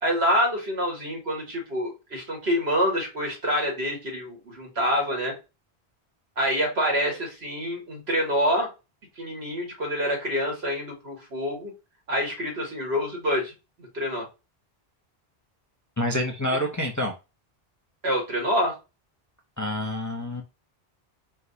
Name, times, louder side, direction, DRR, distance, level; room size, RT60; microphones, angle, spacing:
voice 1, 0.0-5.3 6.4-8.7 9.2-11.7 12.1-13.5 13.9-14.3 18.0-18.7, equal, 80° right, 0 dB, 1.8 m, -26 dB
voice 2, 16.0-17.1 19.6-20.4, left 1 dB, 20° left, 2 dB, 0.5 m, -27 dB
4.6 x 2.3 x 4.0 m, 0.27 s
omnidirectional pair, 1.1 m